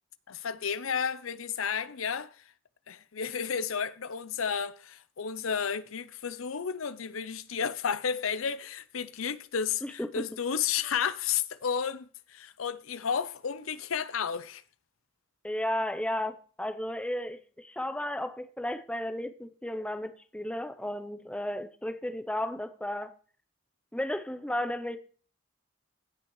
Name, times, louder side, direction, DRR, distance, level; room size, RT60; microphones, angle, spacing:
voice 1, 0.3-2.4 2.9-14.6, left 7 dB, 90° left, 0.7 m, -32 dB
voice 2, 9.8-10.2 15.4-23.1 23.9-25.0, left 1 dB, 5° left, 0.7 m, -34 dB
17.0 x 5.8 x 3.1 m
head